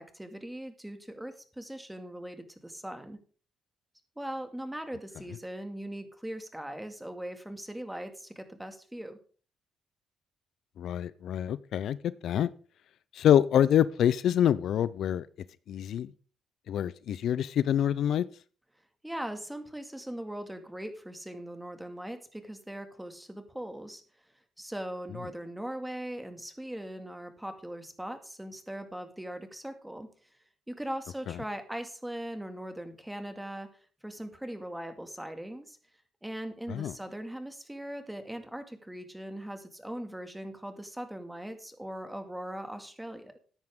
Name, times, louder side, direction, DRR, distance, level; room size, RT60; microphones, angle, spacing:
voice 1, 0.0-3.2 4.2-9.2 19.0-24.0 24.6-30.1 30.7-33.7 34.0-35.8 36.2-43.4, right 1 dB, 5° right, 7 dB, 2.1 m, -40 dB
voice 2, 10.8-12.0 12.2-12.5 13.1-15.3 15.7-16.1 16.7-18.2 36.7-36.9, left 10 dB, 70° left, 18 dB, 0.5 m, -26 dB
13.5 x 9.8 x 3.7 m, 0.41 s
cardioid pair, 90°, 0 cm